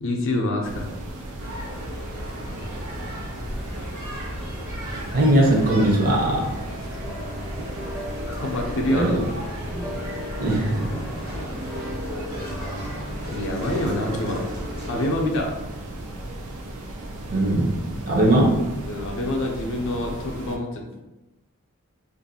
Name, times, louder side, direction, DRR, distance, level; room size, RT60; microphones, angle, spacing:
voice 1, 0.0-0.9 6.9-7.0 8.3-9.1 13.3-14.4 14.9-15.5 18.2-18.3 18.9-20.9, left 1 dB, 60° left, 0 dB, 0.5 m, -26 dB
sound 1, 0.6-20.6, right 1 dB, 85° right, 0.5 m, -36 dB
sound 2, 1.4-15.2, equal, 65° right, 1.1 m, -36 dB
voice 2, 5.1-6.5 7.6-7.7 8.9-9.2 10.4-11.1 17.3-17.8 18.1-18.6, right 1 dB, 40° right, -2 dB, 0.6 m, -20 dB
sound 3, 7.0-16.9, left 1 dB, 5° left, 0.5 m, -37 dB
2.5 x 2.3 x 2.7 m, 1.0 s
head